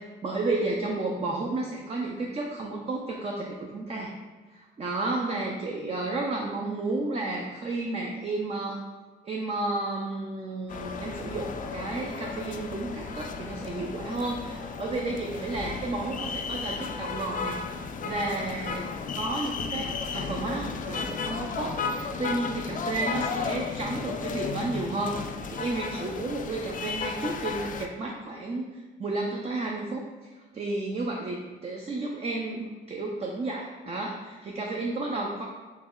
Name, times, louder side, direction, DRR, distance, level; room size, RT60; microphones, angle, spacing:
voice 1, 0.0-4.1 4.5-8.8 9.2-35.4, right 2 dB, 30° right, 0 dB, 0.5 m, -32 dB
sound 1, 10.7-27.9, left 5 dB, 40° left, 0.4 m, -34 dB
3.2 x 3.0 x 3.6 m, 1.3 s
cardioid pair, 90°, 20 cm